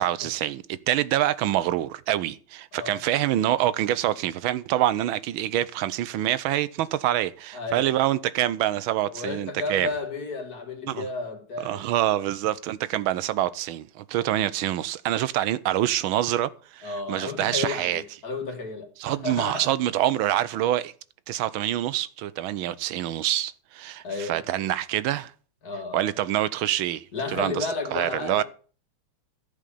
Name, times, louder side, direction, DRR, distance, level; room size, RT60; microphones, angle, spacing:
voice 1, 0.0-9.9 10.9-11.0 11.6-18.0 19.0-20.9 21.3-25.3 25.9-27.1 27.3-28.4, right 13 dB, 75° right, 1.4 m, -26 dB
voice 2, 2.7-3.0 7.5-7.9 9.0-11.9 16.8-19.7 24.0-24.5 25.6-26.1 27.1-28.4, left 3 dB, 45° left, 2.2 m, -33 dB
14.0 x 5.0 x 8.4 m
omnidirectional pair, 2.4 m